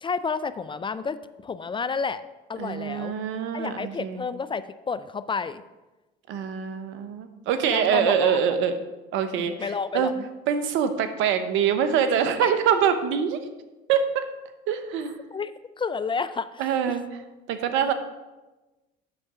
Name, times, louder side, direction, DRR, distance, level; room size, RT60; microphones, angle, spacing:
voice 1, 0.0-2.2 2.5-3.1 3.5-5.6 7.7-8.4 9.4-10.3 12.4-12.5 15.3-15.5 15.8-17.0, left 5 dB, 25° left, 14 dB, 0.4 m, -30 dB
voice 2, 2.6-4.2 6.3-8.8 9.1-10.1 10.5-13.4 13.9-14.2 14.7-15.1 16.6-17.2 17.5-17.9, right 8 dB, 70° right, 10 dB, 0.9 m, -24 dB
8.3 x 6.5 x 4.9 m, 1.1 s
supercardioid pair, 75°, 21 cm